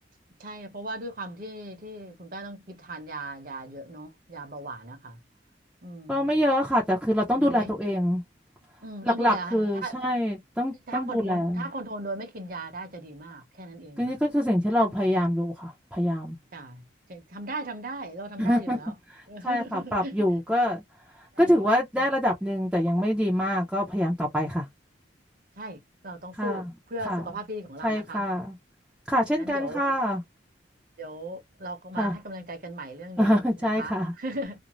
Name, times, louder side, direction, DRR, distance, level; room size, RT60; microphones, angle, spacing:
voice 1, 0.4-5.2 5.8-6.3 7.4-7.7 8.8-10.0 10.9-14.1 16.5-16.8 17.1-18.9 19.3-20.2 21.3-21.7 21.9-22.1 25.6-25.8 26.0-26.6 26.9-28.2 29.4-29.8 31.0-34.5, right 1 dB, 50° right, 0.9 m, -38 dB
voice 2, 6.1-8.2 9.0-11.7 14.0-16.4 18.4-18.8 19.1-20.8 21.4-24.7 26.4-26.6 27.1-27.2 27.8-28.6 29.1-30.2 32.0-32.1 33.2-34.1, equal, 5° right, 0.5 m, -25 dB
2.5 x 2.0 x 3.0 m
head